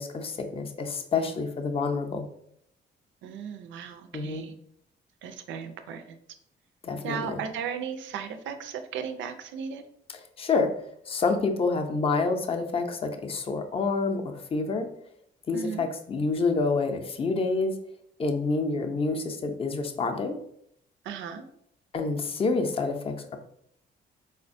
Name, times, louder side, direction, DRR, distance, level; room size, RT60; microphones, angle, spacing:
voice 1, 0.0-2.3 4.1-4.5 6.8-7.3 10.4-14.9 15.5-17.8 18.2-20.4 21.9-23.4, left 4 dB, 30° left, 5 dB, 0.5 m, -28 dB
voice 2, 3.2-4.5 5.2-6.2 7.0-9.8 15.5-15.8 21.0-21.4, right 7 dB, 75° right, 8 dB, 0.4 m, -36 dB
4.0 x 2.1 x 2.5 m, 0.72 s
cardioid pair, 90°, 20 cm